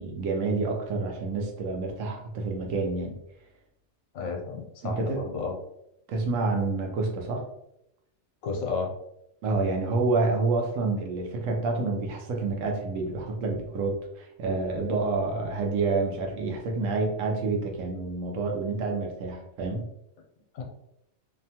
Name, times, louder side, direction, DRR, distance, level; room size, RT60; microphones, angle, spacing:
voice 1, 0.0-3.1 4.8-5.2 6.1-7.5 9.4-19.9, right 3 dB, 75° right, 1 dB, 1.0 m, -28 dB
voice 2, 4.1-5.6 8.4-8.9 20.5-20.6, left 4 dB, 75° left, 1 dB, 1.0 m, -32 dB
2.8 x 2.2 x 2.7 m, 0.80 s
omnidirectional pair, 1.4 m